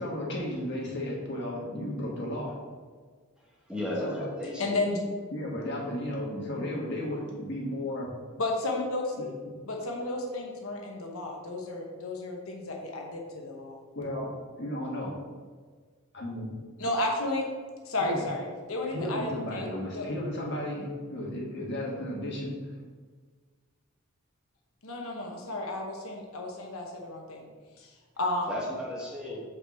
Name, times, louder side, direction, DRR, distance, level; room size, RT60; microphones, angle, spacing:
voice 1, 0.0-2.5 4.0-4.3 5.3-8.1 9.2-9.3 13.9-15.2 16.1-16.5 18.0-18.2 18.8-22.6, left 1 dB, 55° left, -3 dB, 1.7 m, -34 dB
voice 2, 3.4-4.9 28.5-29.4, left 1 dB, 5° right, -5 dB, 1.3 m, -35 dB
voice 3, 4.6-5.0 8.4-9.1 9.6-13.8 16.8-17.4 17.8-19.6 19.9-20.1 24.8-27.5 27.8-28.5, left 2 dB, 80° left, 0 dB, 1.1 m, -32 dB
5.1 x 4.5 x 6.2 m, 1.5 s
head